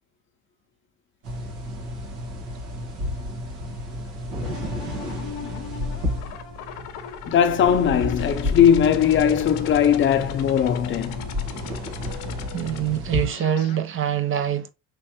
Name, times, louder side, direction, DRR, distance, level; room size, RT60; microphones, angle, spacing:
sound 1, 1.2-13.3, left 1 dB, 75° right, 1.5 m, -32 dB
sound 2, 4.4-13.8, left 8 dB, 90° left, 0.7 m, -37 dB
voice 1, 7.3-11.2, left 9 dB, 40° left, 0.6 m, -19 dB
voice 2, 12.5-14.7, right 10 dB, 40° right, 0.6 m, -24 dB
4.6 x 3.2 x 2.8 m
cardioid pair, 115°, 32 cm